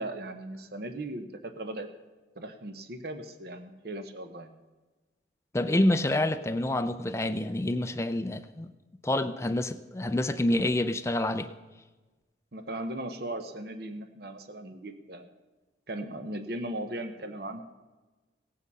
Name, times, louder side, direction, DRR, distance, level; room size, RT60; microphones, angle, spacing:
voice 1, 0.0-1.9 2.4-4.5 12.5-15.3 15.9-17.6, right 1 dB, 55° right, 0.8 m, -38 dB
voice 2, 5.5-8.7 9.0-11.5, left 1 dB, 15° left, 0.5 m, -27 dB
17.0 x 8.5 x 5.4 m
head